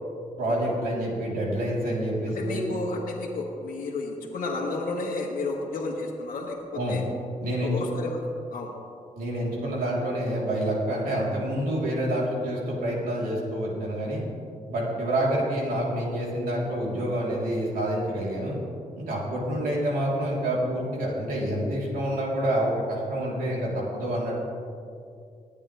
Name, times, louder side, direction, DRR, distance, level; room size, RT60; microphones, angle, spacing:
voice 1, 0.4-2.6 6.7-7.0 7.4-7.8 9.1-14.2 14.7-18.6 18.9-24.4, right 1 dB, 85° right, -4 dB, 3.5 m, -27 dB
voice 2, 2.3-7.0 7.6-8.7, left 2 dB, 80° left, -2 dB, 1.5 m, -32 dB
21.0 x 8.6 x 3.4 m, 2.4 s
cardioid pair, 70°, 14 cm